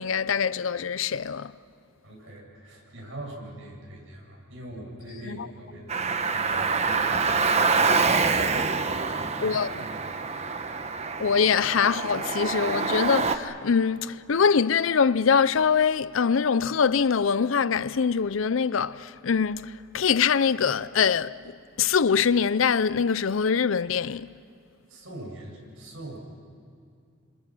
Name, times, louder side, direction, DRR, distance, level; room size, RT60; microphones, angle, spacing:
voice 1, 0.0-1.5 5.3-5.5 9.4-9.7 11.2-24.3, left 6 dB, 80° left, 0.6 m, -23 dB
voice 2, 2.0-11.1 24.9-26.2, right 1 dB, 75° right, 7.6 m, -42 dB
Car, 5.9-13.4, right 4 dB, 35° right, 1.0 m, -26 dB
29.0 x 26.5 x 6.2 m
head